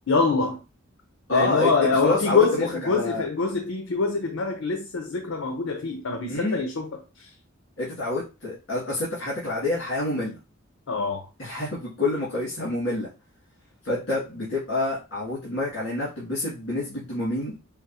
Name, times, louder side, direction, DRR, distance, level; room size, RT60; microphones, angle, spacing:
voice 1, 0.1-0.6 1.3-7.3 10.9-11.3, left 4 dB, 80° left, 0.6 m, -25 dB
voice 2, 1.3-3.2 6.3-6.6 7.8-10.4 11.4-13.1 13.8-17.5, left 2 dB, 60° left, 1.9 m, -27 dB
5.0 x 2.4 x 2.7 m
head